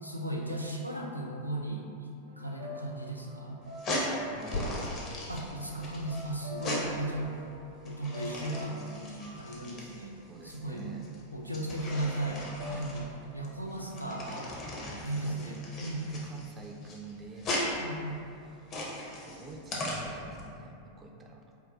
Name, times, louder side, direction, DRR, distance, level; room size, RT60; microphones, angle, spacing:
voice 1, 0.0-3.6 5.3-7.3 7.8-10.2 10.4-10.9 11.3-13.1 13.3-14.5 15.0-16.1 17.8-18.2, right 1 dB, 90° left, -1 dB, 0.3 m, -36 dB
sound 1, 2.3-11.1 11.9-13.0, left 1 dB, 70° right, 0.6 m, -48 dB
sound 2, 3.6-20.4, left 1 dB, 35° left, 0.6 m, -38 dB
voice 2, 3.8-5.3 10.2-11.1 12.6-12.9 14.8-15.6 16.0-18.7 19.1-21.6, right 3 dB, 20° right, 1 dB, 0.3 m, -48 dB
sound 3, 4.5-8.5 9.1-9.2 9.8-9.9 10.2-10.3 11.1-11.2, left 2 dB, 60° left, 1.1 m, -42 dB
3.7 x 2.2 x 2.2 m, 2.6 s
figure-of-eight pair, 90°, 0 cm